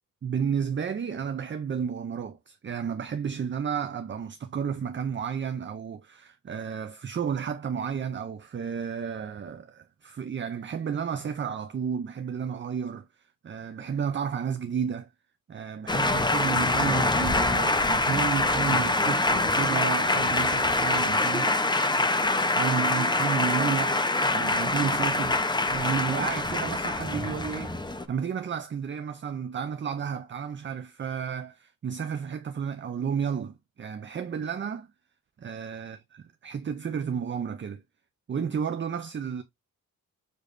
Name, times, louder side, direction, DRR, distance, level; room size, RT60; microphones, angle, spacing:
voice 1, 0.2-13.1 13.4-15.1 15.5-21.5 22.5-27.8 28.1-34.9 35.4-37.8 38.3-39.4, right 7 dB, 35° right, 0.5 m, -32 dB
Male speech man speaking, 15.9-28.0, left 2 dB, 15° left, 0.6 m, -25 dB
6.6 x 3.2 x 2.5 m
wide cardioid pair, 135°, 34 cm